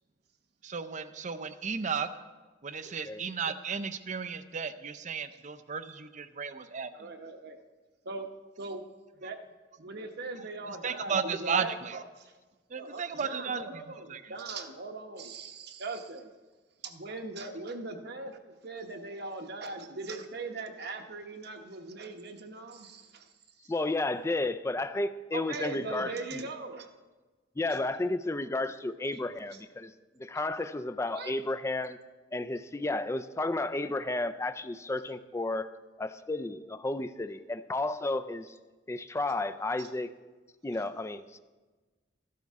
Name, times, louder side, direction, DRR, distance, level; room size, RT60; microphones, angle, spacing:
voice 1, 0.6-2.1 2.6-7.1 10.7-12.0 12.7-14.3, right 6 dB, 40° right, 11 dB, 0.6 m, -34 dB
voice 2, 2.9-3.2 23.7-26.5 27.6-32.0 32.3-35.6 36.0-38.5 38.9-40.1 40.6-41.4, left 2 dB, 15° left, 12 dB, 0.4 m, -32 dB
voice 3, 6.9-7.6 8.0-8.3 8.6-8.8 9.2-9.4 9.8-12.3 12.7-16.3 16.8-23.3 25.3-26.9 31.1-31.3 39.8-39.9, right 3 dB, 60° right, 5 dB, 1.0 m, -40 dB
14.0 x 12.0 x 3.6 m, 1.3 s
head